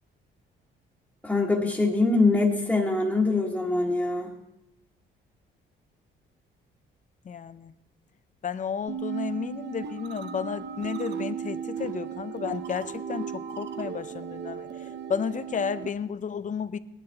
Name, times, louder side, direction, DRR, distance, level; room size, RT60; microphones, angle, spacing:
voice 1, 1.2-4.3, left 3 dB, 5° left, -5 dB, 1.6 m, -23 dB
voice 2, 7.3-7.7 8.4-14.7 15.1-16.8, left 7 dB, 40° left, 13 dB, 0.6 m, -32 dB
sound 1, 8.9-15.9, right 8 dB, 60° right, 0.9 m, -35 dB
18.0 x 10.5 x 3.6 m, 0.92 s
cardioid pair, 90°, 20 cm